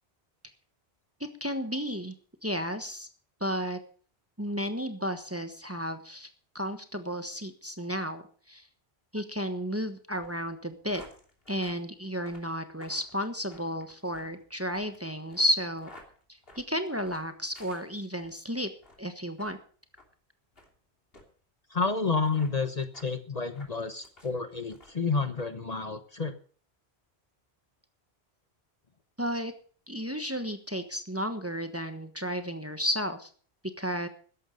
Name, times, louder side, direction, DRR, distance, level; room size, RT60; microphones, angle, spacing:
voice 1, 1.2-2.1 2.4-3.1 3.4-3.8 4.4-6.3 6.5-8.6 9.1-11.0 11.5-15.9 16.6-18.7 19.0-19.6 29.2-29.5 29.9-33.3 33.8-34.1, equal, 15° right, 8 dB, 1.2 m, -32 dB
sound 1, 10.1-18.4 18.8-19.1 19.4-19.6 20.0-20.1 20.5-20.7 21.1-21.3 21.8-21.9 22.2-22.5 22.9-23.1 23.5-24.3 24.7-25.1 25.4-25.5, left 1 dB, 65° left, 3.3 m, -54 dB
voice 2, 21.7-26.3, left 4 dB, 40° left, 9 dB, 1.1 m, -30 dB
14.0 x 11.0 x 5.3 m, 0.44 s
omnidirectional pair, 1.1 m